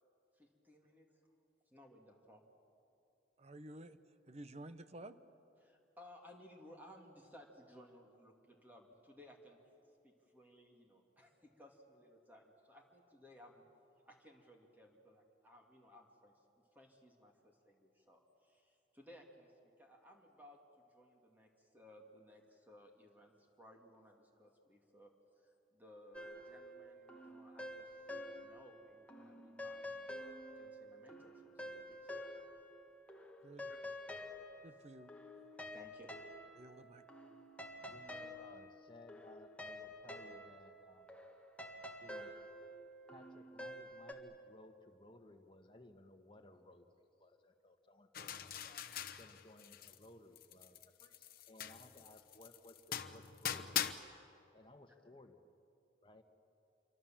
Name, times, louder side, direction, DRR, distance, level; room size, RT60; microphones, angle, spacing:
voice 1, 0.3-1.1 1.7-2.4 5.6-9.6 10.0-13.6 14.0-16.4 16.7-30.2 30.6-32.1 33.7-33.8 35.5-36.1 37.8-37.9, left 1 dB, 10° right, 1 dB, 2.5 m, -61 dB
voice 2, 3.4-4.0 4.3-5.2 33.4-33.7 34.6-35.1 36.6-37.0, right 1 dB, 35° right, 11 dB, 1.0 m, -52 dB
sound 1, 26.1-28.8 29.1-32.8 33.1-44.1, left 1 dB, 5° left, 1.6 m, -49 dB
voice 3, 37.9-41.1 42.0-42.3 43.1-46.9 47.2-48.9 49.2-53.7 54.5-55.4 56.0-56.2, left 1 dB, 30° left, 4 dB, 1.6 m, -60 dB
sound 2, 48.1-50.1 50.3-53.9, left 10 dB, 55° left, 1.0 m, -42 dB
27.5 x 24.0 x 7.5 m, 2.7 s
head